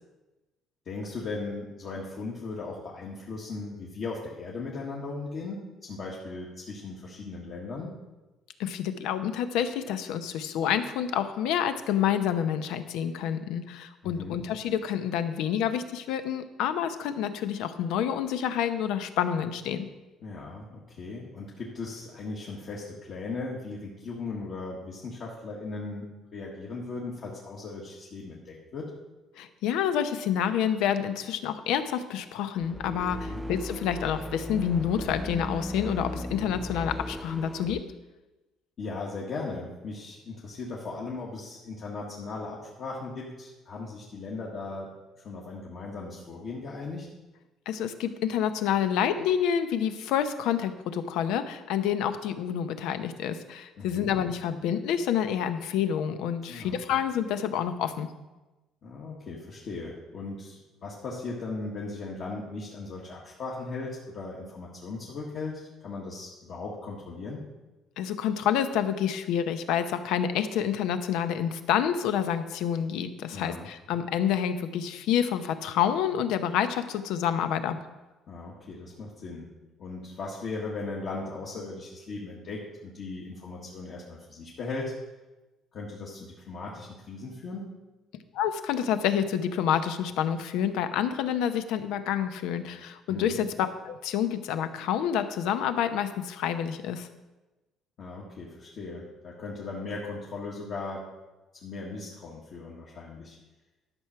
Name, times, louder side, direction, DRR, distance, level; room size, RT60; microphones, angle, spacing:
voice 1, 0.8-7.9 14.0-14.4 20.2-28.9 33.3-33.5 38.8-44.9 45.2-47.1 53.8-54.1 56.5-56.7 58.8-67.4 73.3-73.7 78.3-79.5 79.8-84.9 85.7-87.8 93.1-93.4 98.0-101.1 101.5-103.4, left 3 dB, 45° left, -4 dB, 1.6 m, -38 dB
voice 2, 8.6-19.9 29.4-37.8 47.7-58.1 68.0-77.8 88.3-97.1, left 9 dB, 85° left, 10 dB, 0.8 m, -28 dB
sound 1, 32.6-37.8, equal, ahead, 0.3 m, -36 dB
12.0 x 6.2 x 5.7 m, 1.1 s
cardioid pair, 150°, 0 cm